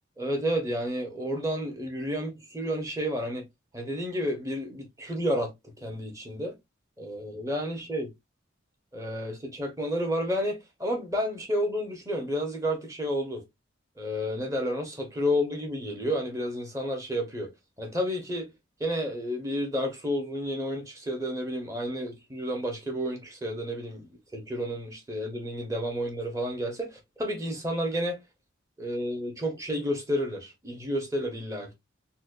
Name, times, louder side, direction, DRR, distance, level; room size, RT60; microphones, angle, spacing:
voice 1, 0.2-3.4 3.7-5.5 5.8-6.5 7.0-8.1 8.9-13.4 14.0-17.5 17.8-18.5 18.8-28.2 28.8-31.7, equal, 15° right, 0.9 m, -31 dB
4.1 x 2.2 x 2.5 m
head